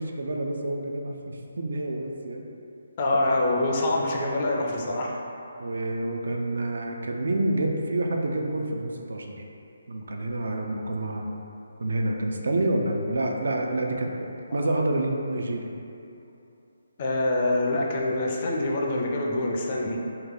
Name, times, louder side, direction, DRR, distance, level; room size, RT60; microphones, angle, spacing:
voice 1, 0.0-2.4 5.6-9.4 9.9-11.2 11.8-15.7, right 1 dB, 60° right, 1 dB, 0.4 m, -28 dB
voice 2, 3.0-5.2 17.0-20.0, left 1 dB, 35° left, -1 dB, 0.4 m, -25 dB
2.8 x 2.8 x 3.7 m, 2.8 s
figure-of-eight pair, 145°, 0 cm